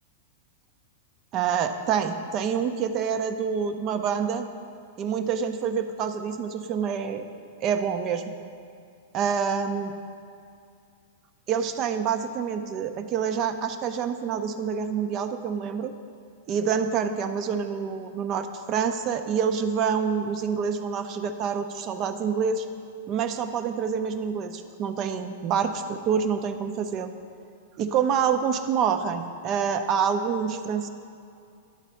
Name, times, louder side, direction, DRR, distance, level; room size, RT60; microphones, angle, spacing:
voice 1, 1.3-4.5 5.0-7.2 7.6-8.3 9.1-9.9 11.5-15.9 16.5-22.7 23.1-27.1 27.8-30.9, right 7 dB, 40° right, 8 dB, 0.5 m, -27 dB
10.5 x 4.1 x 5.6 m, 2.4 s
hypercardioid pair, 120°, 0 cm